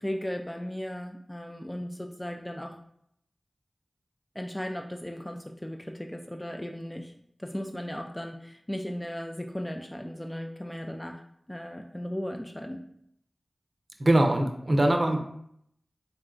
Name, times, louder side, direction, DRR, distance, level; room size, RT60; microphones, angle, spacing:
voice 1, 0.0-2.8 4.4-7.1 7.4-11.2 11.5-12.8, equal, 15° left, 3 dB, 0.3 m, -36 dB
voice 2, 14.0-15.2, right 1 dB, 55° right, 4 dB, 0.5 m, -22 dB
4.1 x 2.2 x 3.8 m, 0.71 s
wide cardioid pair, 45°, 0 cm